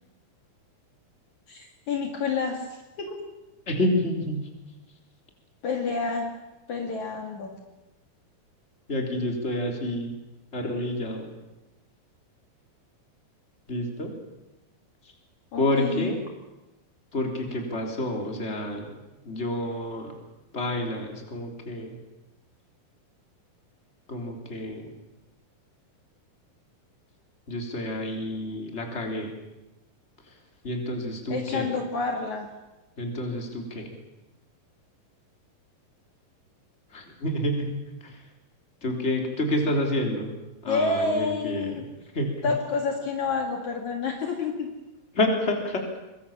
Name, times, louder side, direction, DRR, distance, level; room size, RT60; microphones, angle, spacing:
voice 1, 1.5-2.7 3.0-3.2 5.6-6.3 6.7-7.5 15.5-16.2 31.3-32.5 40.7-41.8 42.4-44.7, left 4 dB, 55° left, 2 dB, 3.3 m, -28 dB
voice 2, 3.7-4.5 8.9-10.1 10.5-11.3 13.7-14.2 15.6-16.2 17.1-19.0 19.2-20.1 20.5-22.0 24.1-24.9 27.5-29.3 30.6-31.7 33.0-33.9 36.9-38.2 38.8-40.3 40.6-41.8 42.1-42.5 45.1-45.8, left 1 dB, 20° left, 2 dB, 3.7 m, -29 dB
24.5 x 21.5 x 7.4 m, 1.0 s
omnidirectional pair, 4.2 m